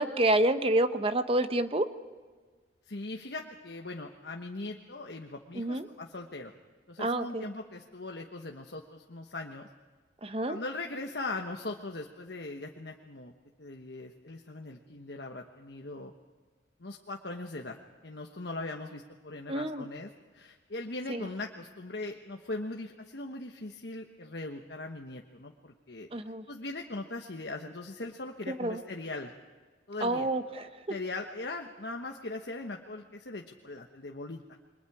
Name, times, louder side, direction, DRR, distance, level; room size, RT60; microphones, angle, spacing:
voice 1, 0.0-1.9 5.5-5.9 7.0-7.5 10.2-10.6 19.5-19.8 21.1-21.2 26.1-26.4 28.5-28.8 30.0-30.7, right 1 dB, 30° right, 10 dB, 0.9 m, -28 dB
voice 2, 2.9-6.5 6.9-9.7 10.5-13.3 13.6-16.1 16.8-17.8 18.0-26.1 26.5-29.3 29.9-30.3 30.9-34.4, left 2 dB, 65° left, 2 dB, 1.2 m, -40 dB
29.0 x 23.5 x 4.9 m, 1.4 s
head